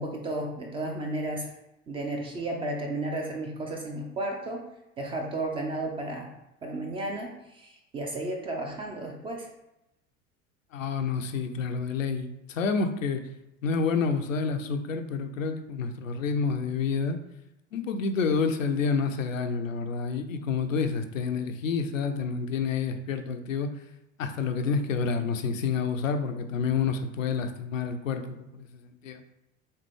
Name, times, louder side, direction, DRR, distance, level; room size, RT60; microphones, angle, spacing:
voice 1, 0.0-1.5 1.9-4.6 5.0-6.3 6.6-9.5, right 1 dB, 15° right, 1 dB, 0.3 m, -33 dB
voice 2, 10.7-13.2 13.6-17.2 17.7-23.7 24.2-28.7 29.0-29.2, left 5 dB, 75° left, 7 dB, 0.5 m, -28 dB
3.5 x 3.3 x 3.1 m, 0.89 s
figure-of-eight pair, 75°, 40 cm